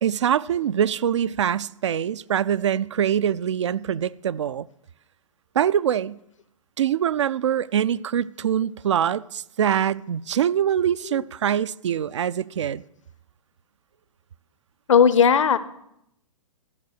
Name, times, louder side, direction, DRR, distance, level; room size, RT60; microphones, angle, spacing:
voice 1, 0.0-4.7 5.5-6.2 6.8-12.8, right 9 dB, 60° right, 0.4 m, -24 dB
voice 2, 14.9-15.6, left 7 dB, 65° left, 0.7 m, -17 dB
14.0 x 6.0 x 6.4 m
figure-of-eight pair, 110°, 17 cm